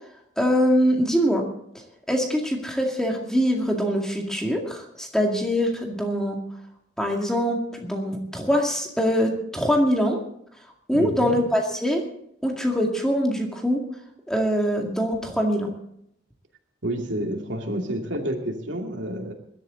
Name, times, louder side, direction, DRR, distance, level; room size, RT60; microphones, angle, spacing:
voice 1, 0.4-1.5 2.1-6.4 7.0-10.2 10.9-12.0 12.4-13.8 14.3-15.7, equal, 5° left, 1 dB, 2.1 m, -23 dB
voice 2, 10.9-11.4 16.8-19.3, right 1 dB, 90° right, 2 dB, 2.6 m, -29 dB
21.0 x 12.0 x 3.9 m, 0.71 s
head